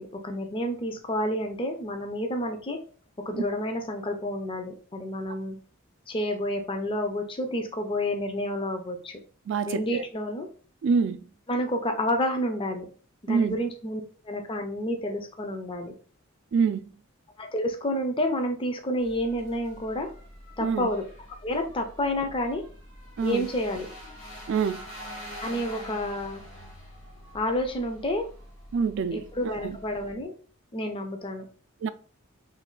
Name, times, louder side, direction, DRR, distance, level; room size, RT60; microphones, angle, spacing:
voice 1, 0.0-2.8 3.3-5.6 6.1-9.1 9.7-10.5 11.5-12.9 13.2-15.9 17.4-20.1 20.6-21.0 21.4-22.6 23.2-23.9 25.4-26.4 27.3-28.2 29.1-30.3 30.7-31.4, left 1 dB, 25° left, 0.4 m, -29 dB
voice 2, 9.5-10.0 10.8-11.2 13.3-13.6 16.5-16.8 20.6-20.9 23.2-23.5 24.5-24.8 28.7-29.8 31.8-31.9, right 5 dB, 60° right, 0.3 m, -26 dB
sound 1, 19.0-30.1, left 1 dB, 70° left, 1.3 m, -45 dB
3.2 x 2.3 x 3.7 m
head